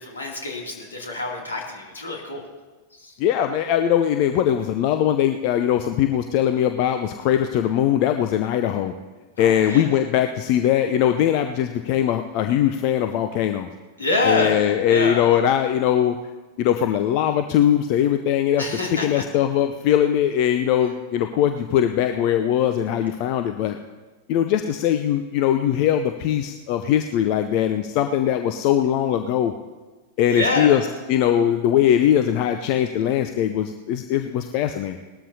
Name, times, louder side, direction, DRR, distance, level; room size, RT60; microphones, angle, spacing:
voice 1, 0.0-2.5 3.0-3.1 9.4-9.9 14.0-15.3 18.6-19.2 30.3-30.8, left 2 dB, 75° left, 0 dB, 2.6 m, -26 dB
voice 2, 3.2-8.9 9.4-13.7 14.2-16.2 16.6-23.8 24.3-29.5 30.2-35.0, left 10 dB, 45° left, 8 dB, 0.6 m, -21 dB
19.5 x 13.0 x 2.8 m, 1.3 s
figure-of-eight pair, 90°, 0 cm